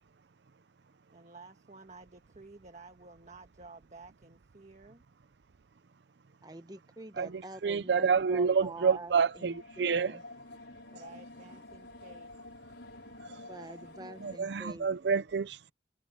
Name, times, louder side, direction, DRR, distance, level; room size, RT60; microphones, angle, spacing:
voice 1, 1.1-5.0 10.9-12.3, right 3 dB, 40° right, 1.5 m, -53 dB
voice 2, 6.4-10.2 13.5-14.9, right 1 dB, 20° right, 1.1 m, -45 dB
voice 3, 7.6-10.1 13.2-13.5 14.2-15.7, right 5 dB, 70° right, 0.5 m, -28 dB
sound 1, 9.2-14.4, left 2 dB, 85° left, 5.8 m, -49 dB
head